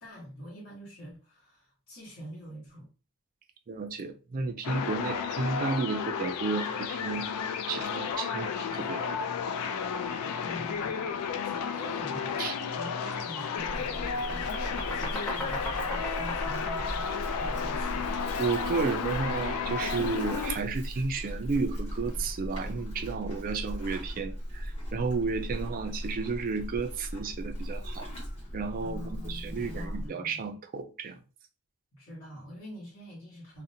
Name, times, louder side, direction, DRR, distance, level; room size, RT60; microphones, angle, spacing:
voice 1, 0.0-2.9 10.4-12.4 12.7-18.1 28.8-30.4 31.9-33.6, equal, 55° left, 1.1 m, -45 dB
voice 2, 3.7-7.3 7.7-9.2 12.4-12.6 18.4-28.1 28.5-31.2, right 4 dB, 40° right, 0.3 m, -32 dB
sound 1, 4.6-20.6, left 6 dB, 85° left, 0.3 m, -33 dB
sound 2, 12.7-12.9 13.2-18.2, equal, 5° left, 0.7 m, -39 dB
Livestock farm animals working animals, 13.6-30.1, equal, 30° left, 1.0 m, -38 dB
2.5 x 2.1 x 2.6 m
head